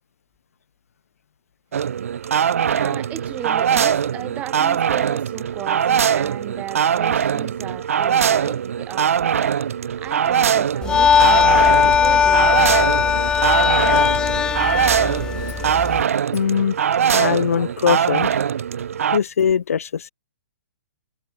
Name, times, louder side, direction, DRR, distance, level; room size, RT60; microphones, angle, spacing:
sound 1, 1.7-19.2, right 8 dB, 70° right, 2.2 m, -21 dB
voice 1, 2.6-9.6 10.0-12.9 13.8-14.3, right 13 dB, 20° right, 1.9 m, -35 dB
sound 2, 10.8-16.0, left 7 dB, 10° left, 0.5 m, -18 dB
voice 2, 16.3-16.8 17.1-18.3 19.1-20.1, left 7 dB, 80° left, 1.3 m, -21 dB
hypercardioid pair, 155°, 8 cm